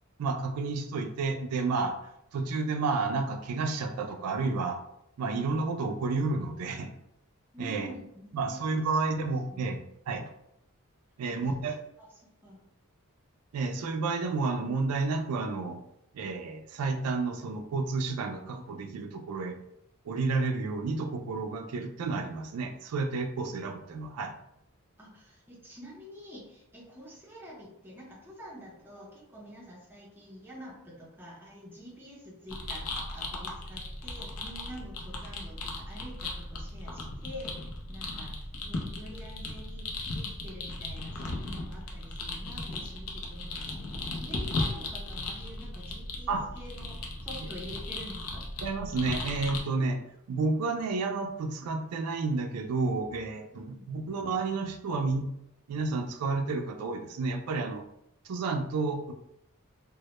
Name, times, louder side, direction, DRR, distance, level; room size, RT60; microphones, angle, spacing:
voice 1, 0.2-2.0 2.3-4.8 5.2-6.9 7.6-7.9 8.3-9.8 10.1-10.2 11.2-11.8 13.5-15.8 16.1-19.6 20.1-24.3 46.3-46.5 48.6-50.0 50.3-55.3 55.7-57.8 58.3-59.1, right 3 dB, 80° right, 5 dB, 0.4 m, -31 dB
voice 2, 7.5-8.6 9.1-9.8 11.3-11.4 12.0-12.1 12.4-12.6 23.4-23.5 25.0-37.6 37.9-43.9 44.1-48.4 53.5-53.8, equal, 10° right, -4 dB, 0.6 m, -47 dB
sound 1, 32.5-49.6, left 2 dB, 70° left, 0.5 m, -37 dB
2.1 x 2.1 x 2.9 m, 0.78 s
head